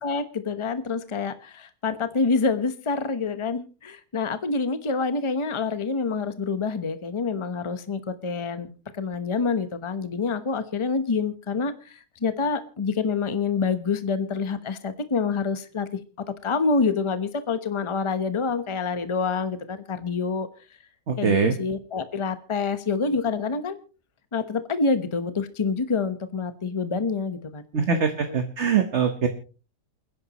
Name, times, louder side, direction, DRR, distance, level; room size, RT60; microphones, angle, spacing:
voice 1, 0.0-8.7 9.0-16.0 16.4-20.5 21.2-23.7 24.3-27.6 27.9-28.4, left 4 dB, 25° left, 11 dB, 0.8 m, -27 dB
voice 2, 21.1-21.5 27.7-29.3, right 6 dB, 50° right, 7 dB, 1.3 m, -23 dB
28.5 x 10.5 x 3.0 m, 0.36 s
omnidirectional pair, 1.7 m